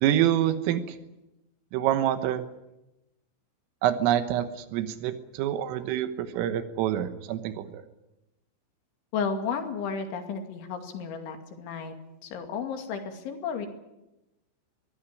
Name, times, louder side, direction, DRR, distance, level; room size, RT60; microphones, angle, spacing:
voice 1, 0.0-1.0 1.7-2.4 3.8-7.8, right 11 dB, 90° right, 9 dB, 3.8 m, -26 dB
voice 2, 9.1-11.9 12.2-13.7, left 6 dB, 70° left, 5 dB, 4.6 m, -33 dB
23.0 x 16.0 x 9.9 m, 0.95 s
omnidirectional pair, 5.7 m